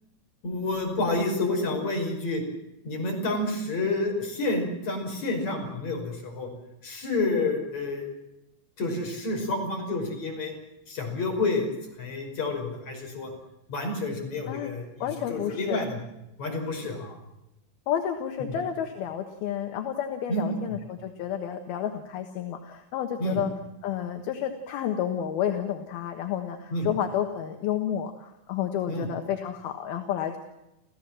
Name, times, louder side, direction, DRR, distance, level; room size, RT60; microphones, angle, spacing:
voice 1, 0.4-2.4 2.8-6.5 6.8-8.1 8.8-10.5 10.9-11.7 12.0-13.3 13.7-16.0 16.4-17.1 18.4-18.6 20.3-20.8 23.2-23.4 26.7-26.9 28.9-29.1, left 2 dB, 35° left, 1 dB, 6.6 m, -29 dB
voice 2, 15.0-15.8 17.9-23.5 23.8-30.4, left 9 dB, 65° left, 5 dB, 2.8 m, -30 dB
29.0 x 15.5 x 7.6 m, 0.92 s
omnidirectional pair, 5.5 m